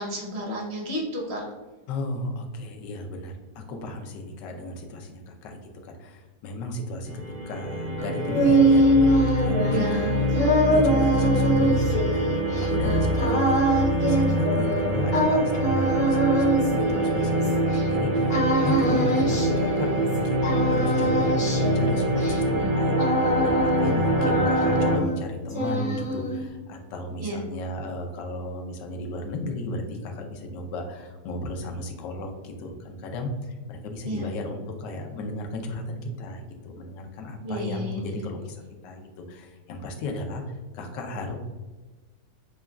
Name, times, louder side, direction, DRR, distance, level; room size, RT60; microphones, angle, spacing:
voice 1, 0.0-1.4 9.7-10.1 23.8-24.2 27.2-27.4 34.0-34.2 37.4-38.1, right 1 dB, 45° right, -2 dB, 0.9 m, -31 dB
voice 2, 1.9-7.1 7.5-23.0 23.4-41.4, left 2 dB, 80° left, 3 dB, 1.3 m, -35 dB
sound 1, 7.1-25.0, right 1 dB, 75° right, 1.5 m, -25 dB
sound 2, 8.0-17.8 18.3-20.2 20.4-23.9 24.2-25.2 25.5-26.5, right 1 dB, 40° left, 0.7 m, -24 dB
6.2 x 2.3 x 2.3 m, 1.3 s
omnidirectional pair, 1.9 m